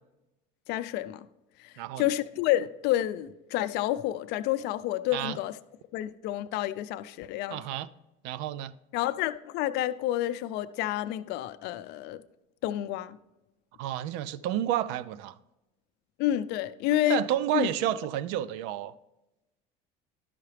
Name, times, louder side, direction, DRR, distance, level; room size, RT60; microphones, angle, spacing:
voice 1, 0.7-1.3 1.6-5.5 5.9-7.6 8.9-12.2 12.6-13.2 16.2-17.2 17.5-17.7, left 13 dB, 60° left, 0.5 m, -29 dB
voice 2, 1.8-2.1 5.1-5.4 7.5-7.9 8.2-8.7 13.8-15.4 17.1-18.9, right 12 dB, 70° right, 0.4 m, -30 dB
12.0 x 5.7 x 3.3 m
supercardioid pair, 120°, 19 cm